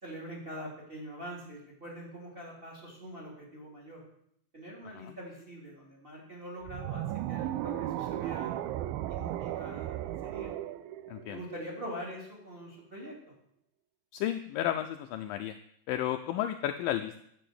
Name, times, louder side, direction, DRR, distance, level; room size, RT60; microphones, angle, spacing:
voice 1, 0.0-4.0 4.5-8.7 9.1-10.5 11.3-13.1, equal, 15° right, -2 dB, 2.6 m, -44 dB
sound 1, 6.6-11.9, right 13 dB, 80° right, 2.3 m, -36 dB
voice 2, 11.1-11.4 14.1-15.6 15.9-17.2, left 12 dB, 85° left, 8 dB, 2.0 m, -32 dB
10.0 x 7.5 x 7.6 m, 0.71 s
omnidirectional pair, 4.6 m